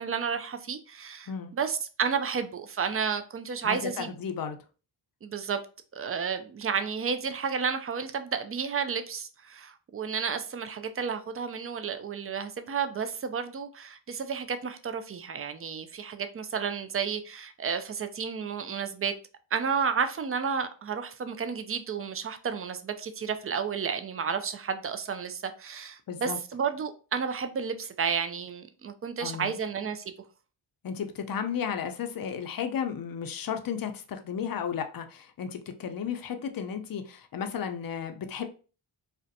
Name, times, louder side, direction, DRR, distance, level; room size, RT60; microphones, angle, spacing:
voice 1, 0.0-4.1 5.2-5.6 5.9-19.1 19.5-30.1, right 6 dB, 30° right, 0.4 m, -32 dB
voice 2, 3.6-4.6 26.1-26.4 29.2-29.6 30.8-38.4, left 7 dB, 45° left, 0.5 m, -34 dB
2.4 x 2.1 x 2.6 m
cardioid pair, 40°, 50 cm